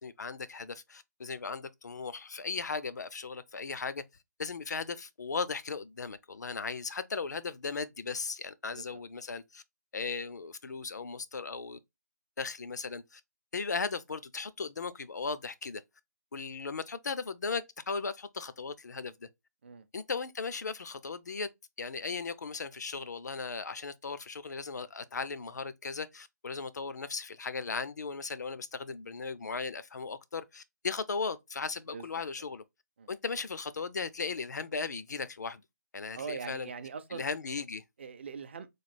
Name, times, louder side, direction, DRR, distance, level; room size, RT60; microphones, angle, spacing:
voice 1, 0.0-4.0 4.4-9.6 9.9-11.8 12.4-13.2 13.5-15.8 16.3-19.3 19.9-21.5 21.8-32.6 33.1-35.6 35.9-36.7 37.1-37.8, left 4 dB, 70° left, 0.5 m, -37 dB
voice 2, 36.1-37.2 38.0-38.7, right 6 dB, 40° right, 0.5 m, -42 dB
3.2 x 2.3 x 4.2 m
figure-of-eight pair, 160°, 10 cm